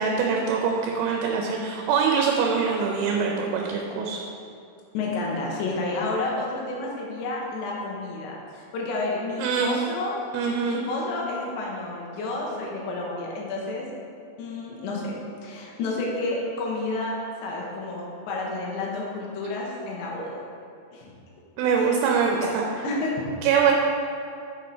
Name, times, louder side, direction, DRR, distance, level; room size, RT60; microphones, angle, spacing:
voice 1, 0.0-4.2 9.4-9.8 10.3-10.8 21.6-22.7 23.4-23.7, right 6 dB, 85° right, 1 dB, 3.1 m, -23 dB
voice 2, 4.9-10.2 10.6-13.9 14.4-15.1 15.4-20.4 20.9-21.1 21.7-21.9 22.8-23.1, left 2 dB, 75° left, -3 dB, 3.2 m, -30 dB
7.7 x 5.3 x 4.4 m, 2.6 s
omnidirectional pair, 5.4 m